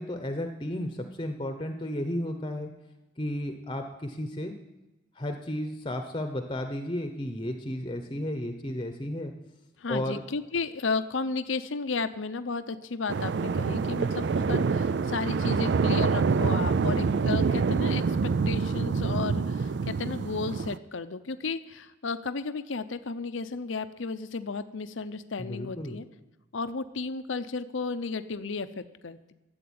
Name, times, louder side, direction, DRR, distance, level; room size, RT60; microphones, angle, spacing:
voice 1, 0.0-2.7 3.2-4.5 5.2-9.3 9.9-10.2 16.7-17.1 25.4-26.0, left 1 dB, 25° left, 6 dB, 0.9 m, -33 dB
voice 2, 9.8-26.1 26.5-29.3, left 4 dB, 75° left, 11 dB, 0.7 m, -33 dB
sound 1, 13.1-20.8, right 5 dB, 60° right, 0.4 m, -26 dB
12.5 x 7.9 x 9.4 m, 1.0 s
head